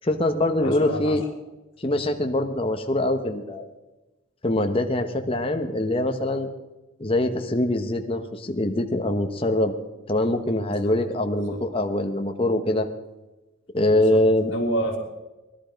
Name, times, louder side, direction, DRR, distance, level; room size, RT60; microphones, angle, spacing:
voice 1, 0.0-1.2 1.8-3.6 4.4-6.5 7.0-9.7 10.1-12.9 13.7-14.5, left 1 dB, 25° left, 5 dB, 1.0 m, -23 dB
voice 2, 0.6-1.2 10.8-11.0 11.4-11.6 13.9-14.2 14.5-15.0, right 1 dB, 60° left, -6 dB, 2.4 m, -29 dB
19.5 x 12.5 x 5.2 m, 1.1 s
head